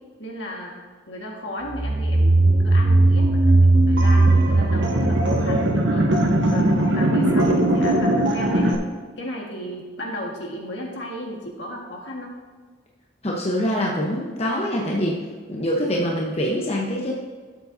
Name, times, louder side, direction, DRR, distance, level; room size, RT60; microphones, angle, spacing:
voice 1, 0.2-0.7 1.1-6.1 6.5-8.7 9.2-12.4, equal, 65° left, -1 dB, 1.7 m, -34 dB
sound 1, 1.8-6.3, right 2 dB, 20° right, 0.4 m, -17 dB
sound 2, 4.0-8.7, right 1 dB, 75° right, 1.1 m, -21 dB
voice 2, 13.2-15.2 15.5-17.1, equal, 35° left, -3 dB, 1.0 m, -24 dB
12.5 x 7.6 x 2.7 m, 1.4 s
head